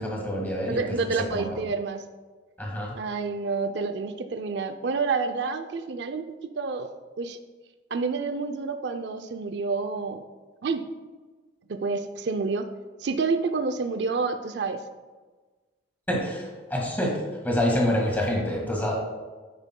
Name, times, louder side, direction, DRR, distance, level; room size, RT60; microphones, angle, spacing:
voice 1, 0.0-1.6 2.6-2.9 16.1-18.9, left 1 dB, 10° left, -2 dB, 1.7 m, -27 dB
voice 2, 0.7-2.0 3.0-6.9 7.2-7.4 7.9-10.2 10.6-10.8 11.7-12.7 13.0-14.8, right 4 dB, 65° right, 7 dB, 0.4 m, -28 dB
9.7 x 8.9 x 2.2 m, 1.3 s
head